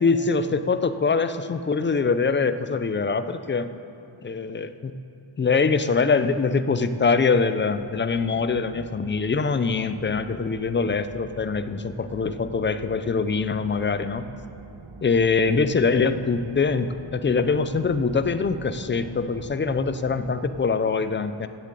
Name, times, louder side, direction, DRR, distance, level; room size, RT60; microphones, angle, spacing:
voice 1, 0.0-3.7 4.2-4.9 5.4-14.2 15.0-21.5, left 4 dB, 25° left, 11 dB, 0.3 m, -23 dB
sound 1, 7.7-20.5, right 4 dB, 55° right, 1.0 m, -44 dB
15.0 x 7.3 x 8.3 m, 2.7 s
wide cardioid pair, 170°, 48 cm